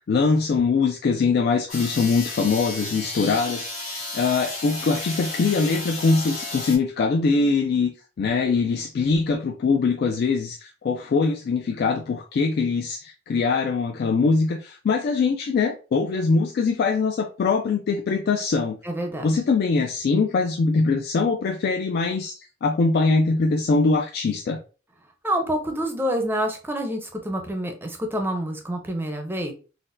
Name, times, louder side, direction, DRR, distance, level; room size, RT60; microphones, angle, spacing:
voice 1, 0.0-7.9 8.2-18.8 19.2-24.6, left 4 dB, 55° left, 4 dB, 0.3 m, -22 dB
sound 1, 1.7-6.8, left 2 dB, 75° left, 1.6 m, -33 dB
voice 2, 18.8-19.3 25.2-29.5, right 1 dB, 10° right, 4 dB, 0.5 m, -27 dB
3.9 x 2.1 x 2.5 m, 0.35 s
head